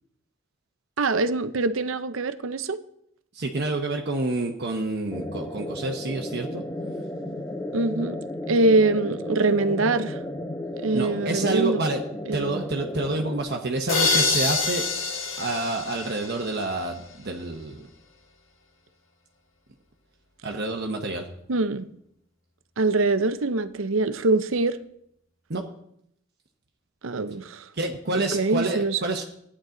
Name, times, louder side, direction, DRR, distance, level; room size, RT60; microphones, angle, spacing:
voice 1, 1.0-2.8 7.7-8.2 8.5-10.2 10.8-11.8 12.3-12.6 21.5-21.9 22.8-24.8 27.0-27.6 28.3-29.0, right 2 dB, 75° right, 0.7 m, -23 dB
voice 2, 3.3-6.6 10.9-12.0 12.3-14.9 15.4-17.9 20.4-21.3 25.5-25.6 27.7-29.2, right 2 dB, 55° right, 1.0 m, -28 dB
sound 1, 5.1-13.4, left 1 dB, 10° left, 0.8 m, -34 dB
sound 2, 13.9-16.7, left 4 dB, 70° left, 1.8 m, -26 dB
15.0 x 9.9 x 3.9 m
head